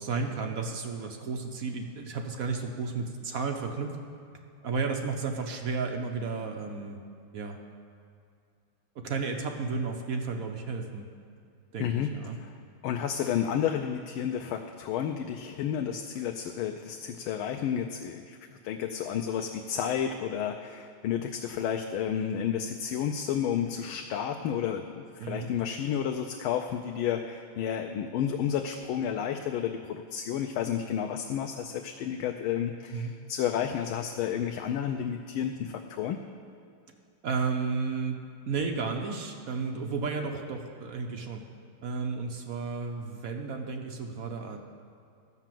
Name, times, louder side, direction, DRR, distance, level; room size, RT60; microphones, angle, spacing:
voice 1, 0.0-4.0 4.6-7.0 7.3-7.6 9.0-11.1 11.7-12.4 25.2-25.5 32.9-33.1 37.2-38.2 38.5-41.4 41.8-44.6, right 4 dB, 60° right, 3 dB, 0.9 m, -33 dB
voice 2, 11.8-12.1 12.4-12.5 12.8-36.2, left 9 dB, 85° left, 4 dB, 1.4 m, -31 dB
12.5 x 6.0 x 7.5 m, 2.5 s
omnidirectional pair, 2.2 m